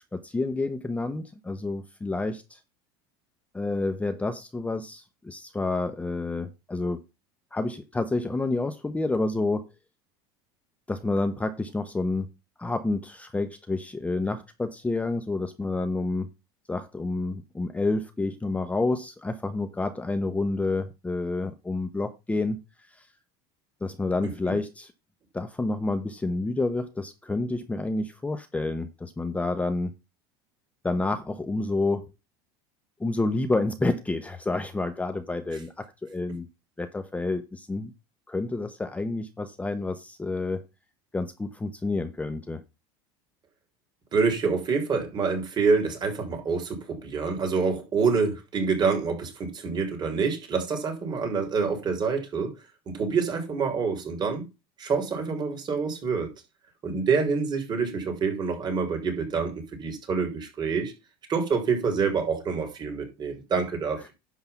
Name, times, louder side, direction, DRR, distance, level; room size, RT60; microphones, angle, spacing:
voice 1, 0.1-2.6 3.5-7.0 7.5-9.7 10.9-12.3 12.6-16.3 16.7-23.1 23.8-24.9 25.3-29.9 30.8-32.1 33.0-36.5 36.8-37.9 38.3-40.6 41.1-42.6 64.0-64.1, left 2 dB, 10° left, 0.9 m, -29 dB
voice 2, 44.1-52.5 52.9-54.5 54.8-56.3 56.8-60.9 61.3-64.1, right 5 dB, 35° right, 3.9 m, -27 dB
10.5 x 3.8 x 7.0 m
supercardioid pair, 110°, 13 cm